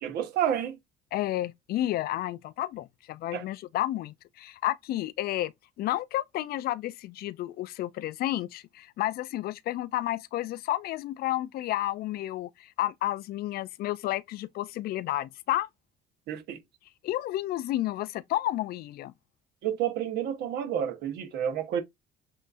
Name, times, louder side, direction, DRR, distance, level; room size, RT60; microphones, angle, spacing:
voice 1, 0.0-0.8 3.3-3.4 16.3-16.6 19.6-21.8, right 9 dB, 80° right, 1.1 m, -30 dB
voice 2, 1.1-5.5 5.8-15.7 17.0-19.1, left 14 dB, 65° left, 0.4 m, -31 dB
7.2 x 2.7 x 2.5 m
cardioid pair, 110°, 17 cm